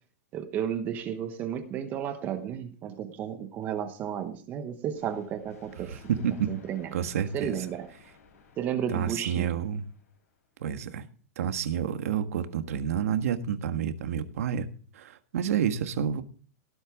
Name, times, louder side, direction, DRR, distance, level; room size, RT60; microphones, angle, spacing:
voice 1, 0.3-6.0 6.5-6.9 7.3-7.9 8.6-9.6, right 9 dB, 20° right, 9 dB, 1.0 m, -33 dB
sound 1, 4.9-10.5, left 5 dB, 70° left, 7.4 m, -57 dB
voice 2, 6.9-7.6 8.9-9.8 10.6-11.0 11.4-14.7 14.9-16.2, right 8 dB, 65° right, 8 dB, 1.6 m, -29 dB
18.0 x 7.9 x 3.7 m, 0.43 s
supercardioid pair, 170°, 8 cm